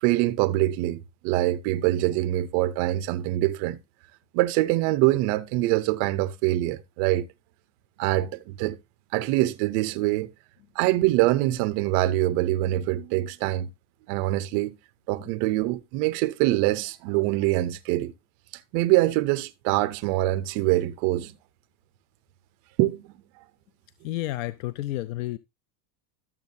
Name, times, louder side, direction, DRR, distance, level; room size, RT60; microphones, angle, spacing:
voice 1, 0.0-3.8 4.3-7.3 8.0-8.8 9.1-10.3 10.8-13.7 14.1-14.7 15.1-18.1 18.7-21.3 22.8-23.0, right 16 dB, 35° right, 0.4 m, -24 dB
voice 2, 24.0-25.4, left 15 dB, 55° left, 0.5 m, -31 dB
12.5 x 7.3 x 2.6 m
supercardioid pair, 165°, 49 cm